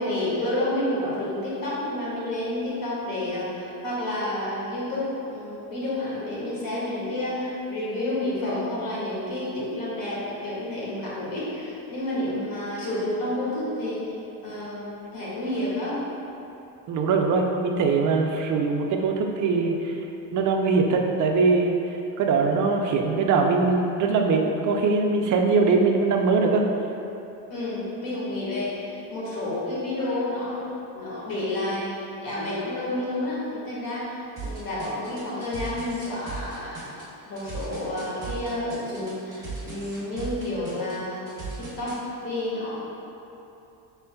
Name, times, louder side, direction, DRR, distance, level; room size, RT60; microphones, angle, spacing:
voice 1, 0.0-14.1 14.4-16.0 27.5-30.6 30.9-36.9 37.2-41.2 41.8-42.8, left 1 dB, 45° left, -7 dB, 1.5 m, -30 dB
voice 2, 16.9-20.0 20.3-26.7, right 4 dB, 45° right, 2 dB, 0.5 m, -22 dB
sound 1, 34.4-42.0, right 4 dB, 10° right, 1.1 m, -37 dB
5.7 x 3.7 x 2.2 m, 2.8 s
cardioid pair, 130°, 46 cm